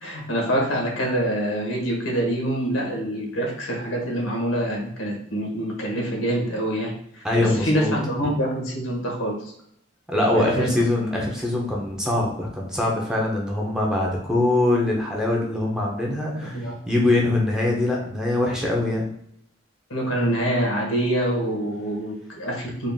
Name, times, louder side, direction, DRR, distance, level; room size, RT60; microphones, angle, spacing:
voice 1, 0.0-9.4 10.3-10.9 16.5-16.7 19.9-22.9, right 1 dB, 85° left, 0 dB, 1.3 m, -25 dB
voice 2, 7.2-7.9 8.2-8.3 10.1-19.1, left 2 dB, 5° right, -3 dB, 0.7 m, -23 dB
3.9 x 2.4 x 3.5 m, 0.71 s
head